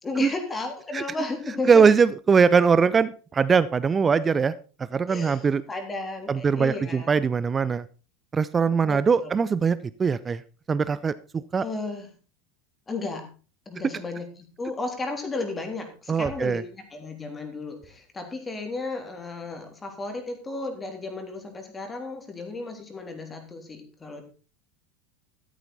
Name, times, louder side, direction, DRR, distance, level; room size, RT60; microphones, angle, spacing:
voice 1, 0.0-1.8 5.1-7.1 8.8-9.3 11.6-12.1 12.9-13.3 13.7-24.2, left 3 dB, 20° left, 4 dB, 3.4 m, -34 dB
voice 2, 1.7-4.5 4.9-5.6 6.3-7.8 8.3-10.4 10.7-11.6 16.1-16.6, right 5 dB, 25° right, 17 dB, 0.5 m, -21 dB
13.5 x 9.2 x 4.2 m, 0.37 s
figure-of-eight pair, 80°, 0 cm